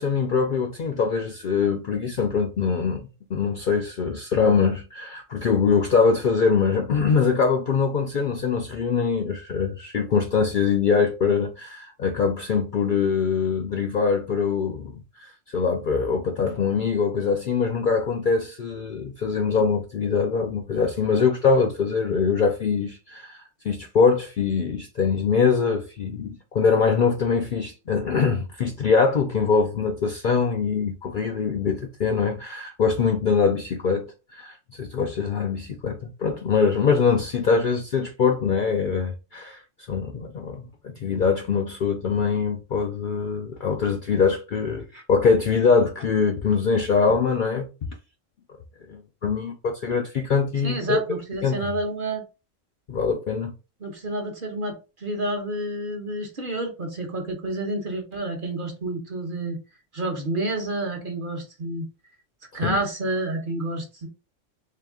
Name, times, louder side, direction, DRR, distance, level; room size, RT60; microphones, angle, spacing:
voice 1, 0.0-39.6 39.9-47.7 48.9-51.0 51.4-51.7 52.9-53.5 62.6-62.8, left 5 dB, 60° left, 0.5 m, -23 dB
voice 2, 50.6-52.2 53.8-59.6 59.9-61.8 62.5-64.1, right 2 dB, 45° right, 1.1 m, -29 dB
3.6 x 2.8 x 3.5 m
omnidirectional pair, 1.3 m